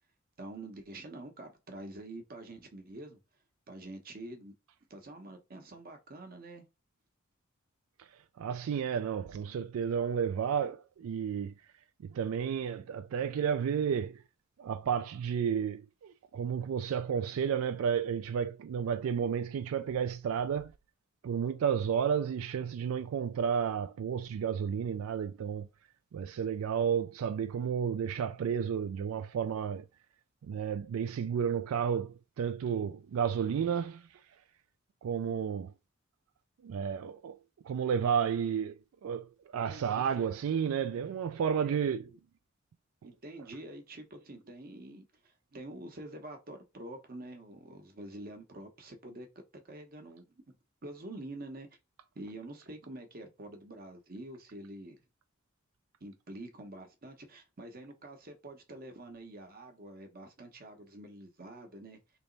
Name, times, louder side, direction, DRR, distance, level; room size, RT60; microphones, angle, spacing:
voice 1, 0.4-3.2 3.7-4.5 4.9-6.6 39.7-40.3 41.5-42.1 43.0-49.3 49.5-50.6 50.8-51.7 52.1-55.0 56.0-62.0, right 1 dB, 45° right, 1.0 m, -47 dB
voice 2, 8.4-11.5 12.0-14.2 14.6-20.7 21.2-25.7 26.1-29.8 30.4-34.0 35.0-35.7 36.6-37.4 37.6-38.8 39.0-39.3 39.5-42.0, right 7 dB, 90° right, 0.3 m, -32 dB
3.4 x 3.0 x 3.9 m
head